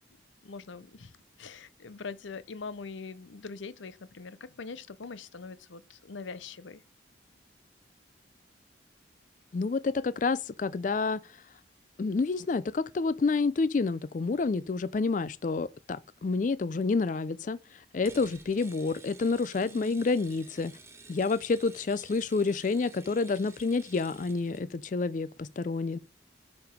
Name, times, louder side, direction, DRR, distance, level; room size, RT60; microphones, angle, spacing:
voice 1, 0.4-1.1 1.4-6.8 19.6-20.0, left 4 dB, 85° left, 0.7 m, -42 dB
voice 2, 9.5-11.2 12.0-17.6 17.9-20.7 21.1-26.0, left 4 dB, 40° left, 0.4 m, -29 dB
sound 1, 18.0-24.6, right 3 dB, 15° right, 1.0 m, -52 dB
7.5 x 5.2 x 5.1 m
head